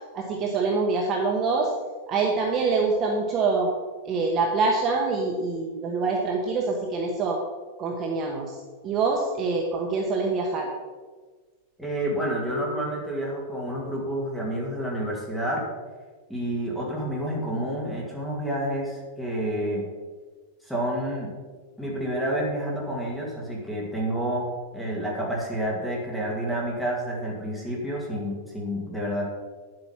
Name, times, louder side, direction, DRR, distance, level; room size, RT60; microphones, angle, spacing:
voice 1, 0.1-1.7 2.1-3.7 4.0-7.4 7.8-10.7, right 4 dB, 25° right, 0 dB, 1.0 m, -25 dB
voice 2, 11.8-15.7 16.3-19.9 20.6-21.3 21.8-29.3, right 1 dB, ahead, -3 dB, 2.1 m, -29 dB
9.9 x 7.8 x 5.7 m, 1.4 s
supercardioid pair, 175°, 0 cm